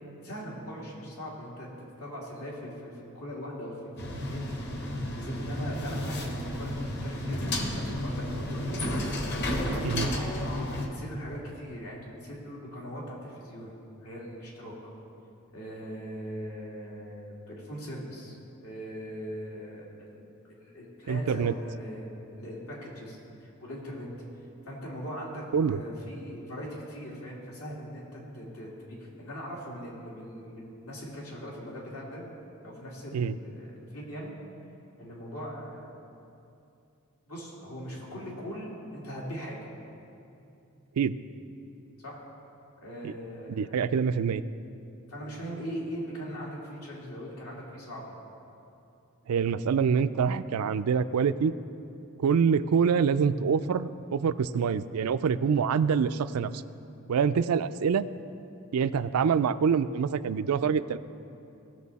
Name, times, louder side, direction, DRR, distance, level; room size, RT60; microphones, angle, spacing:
voice 1, 0.2-1.7 2.0-4.7 5.1-8.8 9.4-10.2 10.5-10.7 10.9-13.7 14.0-14.8 15.5-18.4 18.6-20.2 20.4-24.1 24.7-32.3 32.6-34.3 35.0-35.8 37.3-39.6 42.0-42.2 42.8-43.8 45.1-48.2, equal, 85° left, -4 dB, 2.7 m, -40 dB
sound 1, 4.0-10.9, left 1 dB, 50° left, 1.1 m, -32 dB
voice 2, 21.1-21.6 25.5-25.8 33.1-33.3 41.0-41.2 43.0-43.1 43.5-44.4 49.3-51.5 52.2-56.5 57.1-58.1 58.7-61.0, right 6 dB, 90° right, 13 dB, 0.4 m, -25 dB
18.5 x 6.3 x 4.1 m, 2.7 s
head